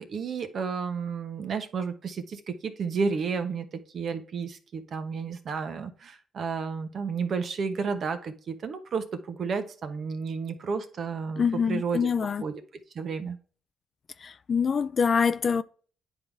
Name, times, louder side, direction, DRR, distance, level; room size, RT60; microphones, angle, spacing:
voice 1, 0.0-3.7 3.9-12.5 12.9-13.4, right 5 dB, 55° right, 1.1 m, -32 dB
voice 2, 11.4-12.4 14.2-15.6, left 6 dB, 45° left, 0.4 m, -25 dB
9.5 x 3.7 x 3.5 m
cardioid pair, 90°, 0 cm